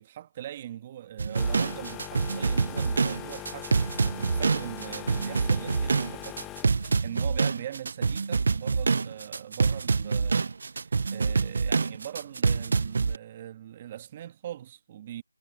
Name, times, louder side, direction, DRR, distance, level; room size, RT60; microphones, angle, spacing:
voice 1, 0.0-6.4 7.0-10.4 10.7-15.2, right 11 dB, 20° right, 1.4 m, -41 dB
sound 1, 1.2-13.2, right 4 dB, 40° right, 0.4 m, -26 dB
sound 2, 1.3-7.0, left 14 dB, 5° left, 0.8 m, -41 dB
figure-of-eight pair, 170°, 0 cm